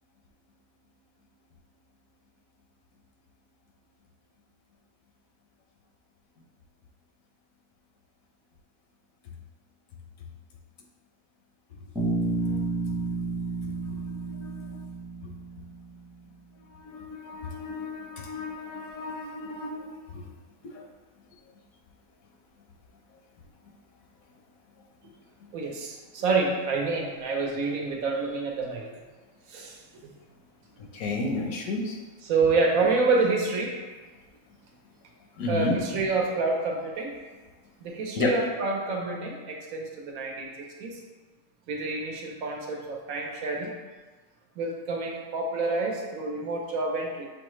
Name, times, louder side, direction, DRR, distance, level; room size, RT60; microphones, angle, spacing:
Bass guitar, 12.0-16.0, right 3 dB, 5° right, 0.5 m, -31 dB
voice 1, 14.3-14.8 16.8-19.9 30.9-31.9 35.4-35.7 38.2-38.3, left 3 dB, 75° left, 0 dB, 1.1 m, -32 dB
voice 2, 25.5-28.8 29.5-30.1 32.2-33.7 35.5-37.1 37.8-41.0 41.7-43.7 44.6-47.3, right 3 dB, 75° right, 0 dB, 1.1 m, -28 dB
6.8 x 2.3 x 3.0 m, 1.3 s
omnidirectional pair, 1.5 m